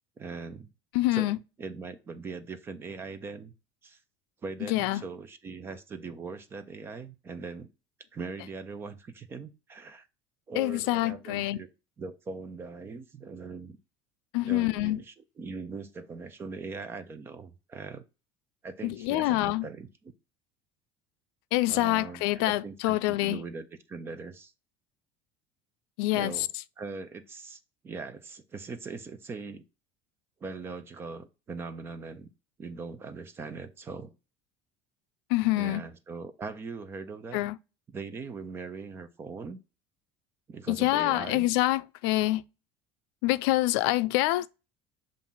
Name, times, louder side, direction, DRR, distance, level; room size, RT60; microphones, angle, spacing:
voice 1, 0.2-0.7 1.1-1.3 1.6-3.5 3.8-4.0 4.4-7.7 8.1-10.1 10.5-11.7 12.0-13.8 14.4-18.0 18.6-19.9 21.7-24.5 26.1-26.5 26.8-29.6 30.4-32.3 32.6-34.1 35.6-37.4 37.9-39.6 40.5-41.5, right 4 dB, 20° right, 0.5 m, -40 dB
voice 2, 0.9-1.4 4.7-5.0 10.5-11.6 14.3-15.0 18.8-19.7 21.5-23.4 26.0-26.5 35.3-35.8 37.3-37.6 40.7-42.4 43.2-44.5, left 17 dB, 90° left, 0.4 m, -26 dB
7.1 x 2.5 x 5.5 m
cardioid pair, 175°, 13 cm